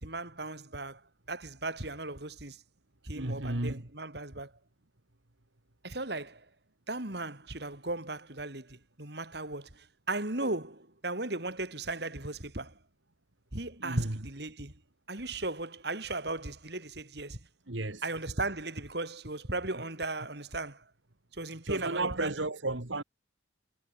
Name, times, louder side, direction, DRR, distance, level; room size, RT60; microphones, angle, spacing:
voice 1, 0.0-1.0 1.3-2.6 3.0-4.5 5.8-6.4 6.9-12.7 13.5-14.7 15.1-17.4 18.0-20.8 21.4-22.3, right 2 dB, 55° right, 3.3 m, -36 dB
voice 2, 3.1-3.8 13.8-14.2 17.7-18.0 21.6-23.0, right 2 dB, 75° right, 2.3 m, -33 dB
head